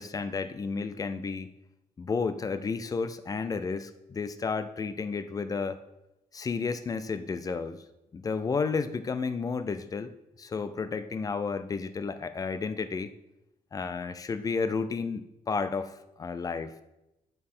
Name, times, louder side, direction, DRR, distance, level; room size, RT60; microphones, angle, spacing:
voice 1, 0.0-1.5 2.0-5.8 6.3-7.8 8.1-10.1 10.4-13.1 13.7-16.8, left 4 dB, 25° left, 12 dB, 0.5 m, -32 dB
6.7 x 6.4 x 5.6 m, 0.90 s
cardioid pair, 145°, 13 cm